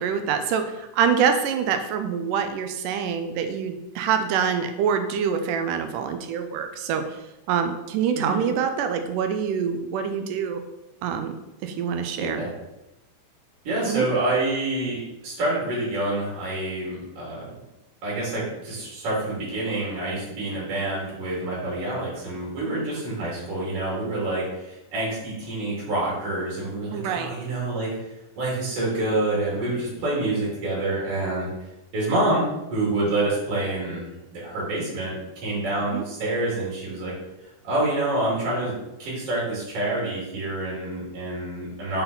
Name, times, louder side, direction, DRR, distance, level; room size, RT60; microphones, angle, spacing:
voice 1, 0.0-7.2 7.5-10.6 11.0-12.4 13.9-14.1 26.9-27.3 35.9-36.0, right 7 dB, 85° right, 7 dB, 2.2 m, -25 dB
voice 2, 12.2-12.5 13.6-17.5 18.0-28.1 28.4-31.5 31.9-34.0 34.3-35.2 35.4-37.1 37.4-38.7 39.0-42.0, right 2 dB, 50° right, -6 dB, 3.2 m, -27 dB
5.7 x 5.7 x 4.0 m, 0.95 s
omnidirectional pair, 3.7 m